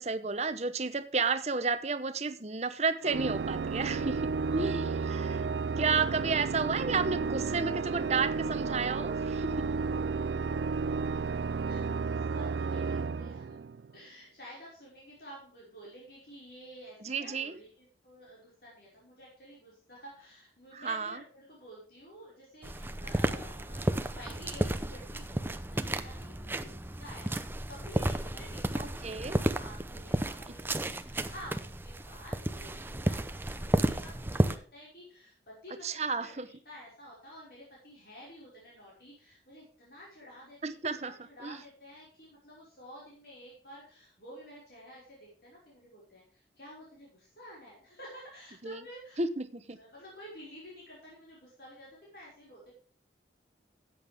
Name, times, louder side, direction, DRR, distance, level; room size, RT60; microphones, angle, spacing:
voice 1, 0.0-5.4 5.8-9.7 17.0-17.6 20.7-21.2 28.8-29.4 35.8-36.5 40.6-41.1 41.4-41.6 48.6-48.8 49.2-49.8, right 4 dB, 35° right, 11 dB, 0.9 m, -32 dB
Organ, 3.0-14.0, right 4 dB, 70° right, 0.4 m, -32 dB
voice 2, 3.9-4.4 11.7-13.6 13.9-27.4 27.7-49.2 49.7-52.7, equal, 60° left, -5 dB, 5.4 m, -51 dB
sound 1, 22.6-34.6, right 1 dB, 10° right, 0.6 m, -32 dB
13.5 x 8.8 x 3.5 m, 0.43 s
head